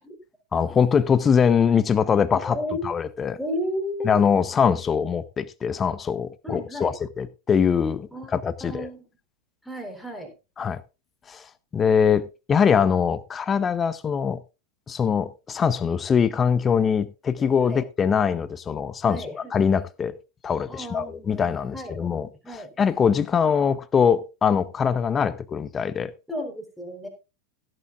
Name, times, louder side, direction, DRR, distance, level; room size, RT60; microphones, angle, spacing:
voice 1, 0.5-2.6 2.8-3.4 4.0-8.9 10.6-10.8 11.3-11.5 11.7-14.4 14.9-20.1 20.4-22.3 22.8-26.1, left 7 dB, 20° left, 0.8 m, -22 dB
voice 2, 2.4-2.9 3.4-4.4 6.4-7.0 8.1-8.3 8.6-9.1 9.6-10.3 17.4-17.8 19.1-19.6 20.7-22.7 26.3-27.1, left 1 dB, ahead, 3.8 m, -33 dB
16.0 x 11.0 x 2.4 m
figure-of-eight pair, 90°, 0 cm